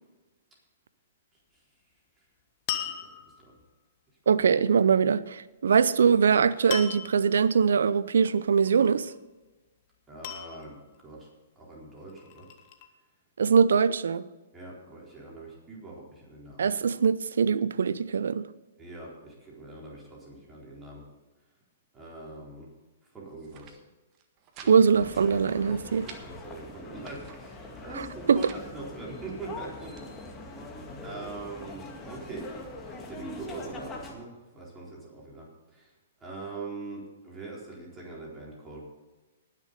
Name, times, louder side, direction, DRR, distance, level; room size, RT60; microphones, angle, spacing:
sound 1, 2.7-3.6 6.7-7.3 8.7-9.2 10.2-11.0 12.0-12.9, left 9 dB, 45° left, 1.5 m, -37 dB
voice 1, 4.3-9.1 13.4-14.3 16.6-18.5 24.7-26.1 28.3-28.4, right 6 dB, 70° right, 0.6 m, -22 dB
voice 2, 10.1-11.3 11.6-12.5 14.5-16.7 18.8-21.0 21.9-22.7 23.1-23.8 24.6-24.8 26.1-30.1 30.4-30.7 31.0-32.5 32.8-35.9 36.2-38.9, right 3 dB, 15° right, 4.1 m, -43 dB
sound 2, 23.3-23.8 24.1-24.8 25.0-25.1 25.5-26.2 26.8-27.4 28.1-28.7 29.3-30.1, right 7 dB, 35° right, 1.6 m, -50 dB
sound 3, 24.9-34.1, left 2 dB, 20° left, 2.1 m, -42 dB
19.0 x 6.7 x 5.2 m
hypercardioid pair, 115°, 0 cm